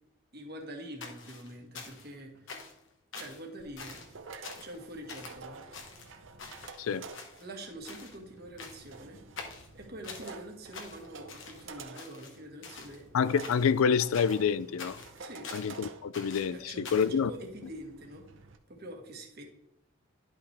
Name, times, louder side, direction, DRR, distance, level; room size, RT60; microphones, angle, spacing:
voice 1, 0.3-2.6 3.1-4.0 4.6-5.6 6.8-7.0 7.4-9.2 9.7-13.1 14.0-14.1 15.2-15.5 16.5-18.2 18.7-19.4, right 1 dB, 50° right, 1.5 m, -45 dB
sound 1, 1.0-2.1 2.5-2.8 3.1-3.4 3.8-4.1 4.4-4.8 5.1-5.4 5.7-6.8 7.1-7.6 7.8-8.2 8.6-9.0 9.4-10.3 10.7-11.7 11.9-13.0 13.4-13.8 14.1-15.8 16.1-17.2, left 4 dB, 65° left, 1.4 m, -46 dB
sound 2, 3.6-18.6, right 4 dB, 65° right, 0.7 m, -50 dB
voice 2, 13.1-15.0 15.5-17.3, left 6 dB, 80° left, 0.4 m, -27 dB
11.0 x 5.5 x 3.3 m
head